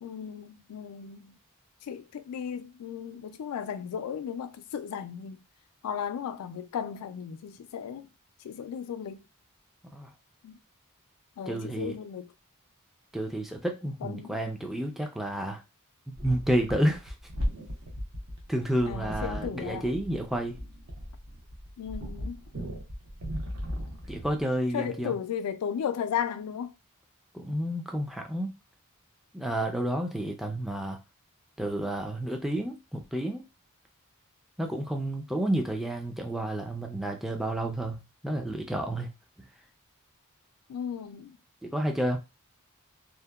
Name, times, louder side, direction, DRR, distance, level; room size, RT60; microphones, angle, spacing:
voice 1, 0.0-1.4 1.8-5.4 5.8-8.1 8.4-9.2 10.4-10.6 11.4-12.3 14.0-14.4 18.8-19.9 21.8-22.4 24.7-26.7 40.7-41.4, left 8 dB, 85° left, 0.3 m, -35 dB
voice 2, 11.5-12.0 13.1-15.6 16.1-17.1 18.5-20.6 24.1-25.1 27.3-28.5 29.3-31.0 31.6-33.4 34.6-39.1 41.6-42.2, right 1 dB, ahead, 0.3 m, -30 dB
sound 1, 16.1-24.4, equal, 70° right, 0.7 m, -37 dB
2.7 x 2.1 x 2.2 m
head